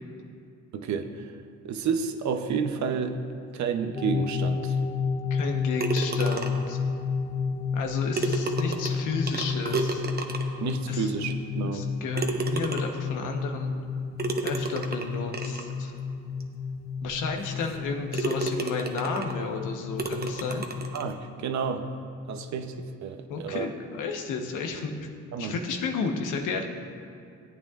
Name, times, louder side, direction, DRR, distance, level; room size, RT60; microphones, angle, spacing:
voice 1, 0.7-1.3 1.6-3.2 3.5-4.8 10.6-11.9 20.9-21.8 22.3-23.7 25.3-25.5, right 6 dB, 65° right, 6 dB, 0.8 m, -30 dB
sound 1, 4.0-21.1, left 5 dB, 25° left, 0.4 m, -31 dB
voice 2, 5.3-6.8 7.7-10.0 10.9-11.1 11.6-13.7 14.4-15.9 17.0-20.7 23.3-25.1 25.4-26.6, left 4 dB, 90° left, 3 dB, 1.1 m, -32 dB
sound 2, 5.8-6.8 7.8-10.7 11.3-11.4 12.1-13.1 14.2-15.7 16.4-16.5 17.0-17.1 17.6-17.8 18.1-19.4 20.0-21.1, right 3 dB, 30° right, 1.0 m, -32 dB
17.5 x 8.9 x 2.5 m, 2.5 s
cardioid pair, 90°, 30 cm